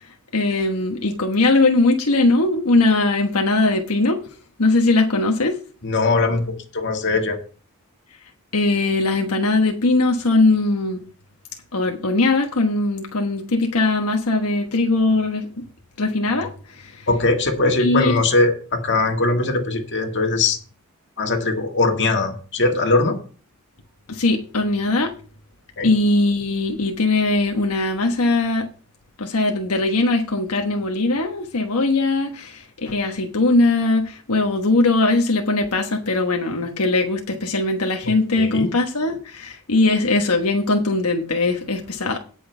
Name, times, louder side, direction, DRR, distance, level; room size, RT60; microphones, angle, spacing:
voice 1, 0.3-4.2 4.6-5.6 8.5-11.0 11.7-15.6 16.0-16.5 16.8-17.0 17.8-18.2 24.1-25.1 25.8-28.7 29.2-42.2, left 2 dB, 85° left, 1.2 m, -20 dB
voice 2, 5.8-7.4 17.1-20.6 21.2-23.2 25.8-25.9 38.0-38.7, left 3 dB, 55° left, 1.9 m, -21 dB
17.0 x 6.3 x 3.4 m
head